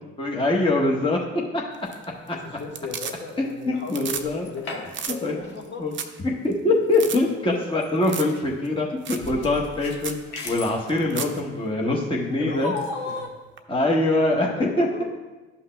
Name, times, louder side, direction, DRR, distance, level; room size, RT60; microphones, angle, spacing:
voice 1, 0.2-1.2 2.3-2.4 3.4-4.5 5.2-5.3 5.8-5.9 6.2-10.2 10.4-12.7 13.7-14.5 14.8-14.9, left 2 dB, 15° left, -2 dB, 1.1 m, -23 dB
sound 1, 1.7-2.3 2.6-3.5 3.8-4.3 4.5-4.6 4.9-5.2 5.6-5.7 5.9-6.2 6.5-6.6 6.9-7.2 8.0-8.4 8.6-8.7 9.1-9.3 9.6-9.7 10.0-10.2 10.9-11.4 13.6-13.7, right 7 dB, 35° right, 0.7 m, -33 dB
voice 2, 2.3-5.8 7.3-7.6 11.1-13.3 14.3-15.0, left 3 dB, 30° left, 0 dB, 1.3 m, -38 dB
sound 2, 4.2-5.1 5.4-5.6 6.9-7.0 7.8-8.3 9.2-10.8 12.6-13.3, left 3 dB, 75° left, 1.0 m, -34 dB
12.0 x 5.6 x 2.2 m, 1.2 s
figure-of-eight pair, 50°, 34 cm